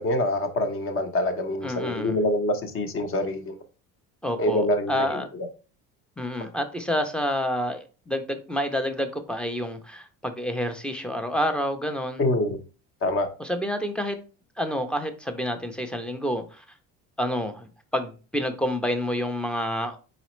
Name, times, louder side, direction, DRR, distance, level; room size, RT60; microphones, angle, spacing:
voice 1, 0.0-3.6 4.4-5.2 12.2-12.6 13.0-13.3, left 1 dB, 35° left, 0.8 m, -25 dB
voice 2, 1.6-2.2 4.2-5.3 6.2-12.3 13.4-14.2 14.6-16.6 17.2-20.0, equal, 5° left, 0.4 m, -28 dB
4.0 x 4.0 x 3.0 m
cardioid pair, 130°, 36 cm